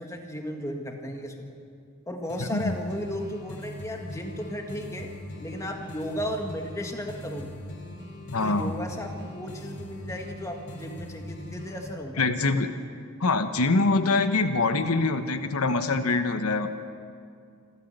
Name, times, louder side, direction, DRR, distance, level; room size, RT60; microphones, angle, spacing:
voice 1, 0.0-1.4 2.1-5.1 5.4-7.6 8.4-12.2, equal, 15° left, 2 dB, 1.7 m, -35 dB
sound 1, 2.3-11.9, left 1 dB, 50° left, 3.0 m, -41 dB
voice 2, 2.4-2.7 8.3-8.7 12.2-12.7 13.2-16.7, left 3 dB, 80° left, 8 dB, 1.0 m, -24 dB
27.5 x 13.0 x 8.0 m, 2.3 s
head